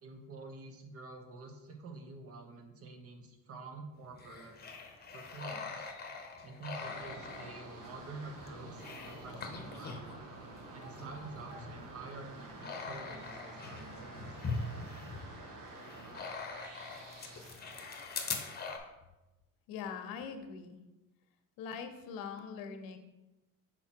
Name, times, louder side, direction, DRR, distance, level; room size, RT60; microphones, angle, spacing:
voice 1, 0.0-4.6 5.1-5.9 6.4-10.0 10.7-14.7, right 3 dB, 45° right, 4 dB, 1.1 m, -48 dB
sound 1, 4.1-10.2 10.6-18.8, left 4 dB, 30° left, 0.9 m, -43 dB
sound 2, 6.7-18.6, right 2 dB, 65° right, 1.3 m, -50 dB
voice 2, 19.7-20.8 21.6-23.0, left 6 dB, 90° left, 7 dB, 0.8 m, -42 dB
5.9 x 4.3 x 4.5 m, 1.0 s
cardioid pair, 125°, 34 cm